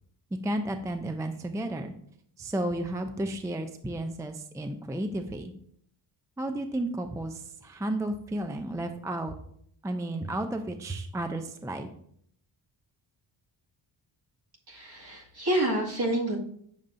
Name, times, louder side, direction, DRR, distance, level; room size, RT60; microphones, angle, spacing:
voice 1, 0.4-1.9 2.4-5.5 6.4-9.3 9.8-11.9, right 1 dB, 5° right, 6 dB, 0.5 m, -32 dB
voice 2, 14.7-16.4, right 1 dB, 50° right, -2 dB, 2.2 m, -28 dB
8.7 x 6.4 x 2.6 m, 0.66 s
cardioid pair, 85°, 48 cm